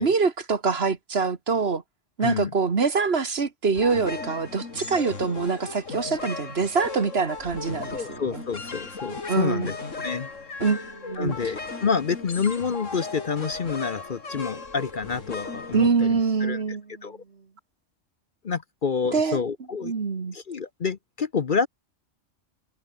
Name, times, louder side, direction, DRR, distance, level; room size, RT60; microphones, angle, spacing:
voice 1, 0.0-1.8 2.2-8.4 9.3-9.7 10.6-11.4 15.7-17.1 19.1-19.4 19.8-20.4, right 5 dB, 55° right, 1.8 m, -25 dB
voice 2, 2.2-2.5 7.9-9.8 10.0-10.3 11.2-16.6 17.0-17.2 18.4-19.9 20.3-21.7, left 5 dB, 45° left, 1.0 m, -28 dB
sound 1, 3.8-16.5, left 4 dB, 85° left, 3.1 m, -37 dB
omnidirectional pair, 1.3 m